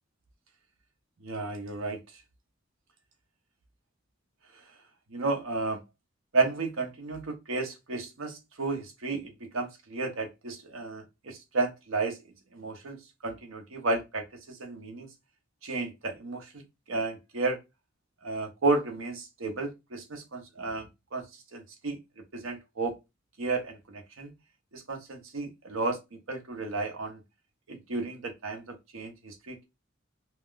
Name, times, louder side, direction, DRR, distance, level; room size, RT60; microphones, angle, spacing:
voice 1, 1.2-2.0 5.1-5.8 6.3-12.2 12.5-13.0 13.2-15.1 15.6-16.5 16.9-17.6 18.2-21.2 21.5-22.0 22.3-23.0 23.4-24.3 24.7-26.0 26.3-27.2 27.7-29.7, right 3 dB, 85° right, 0.8 m, -32 dB
2.4 x 2.2 x 3.6 m
head